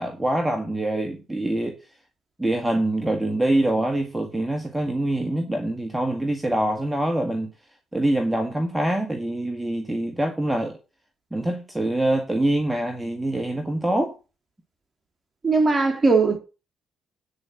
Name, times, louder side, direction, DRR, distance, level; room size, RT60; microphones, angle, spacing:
voice 1, 0.0-1.8 2.4-7.5 7.9-10.8 11.3-14.1, right 1 dB, 5° right, 1.7 m, -24 dB
voice 2, 15.4-16.4, right 3 dB, 25° right, 3.2 m, -19 dB
9.7 x 5.2 x 7.3 m
cardioid pair, 90°, 0 cm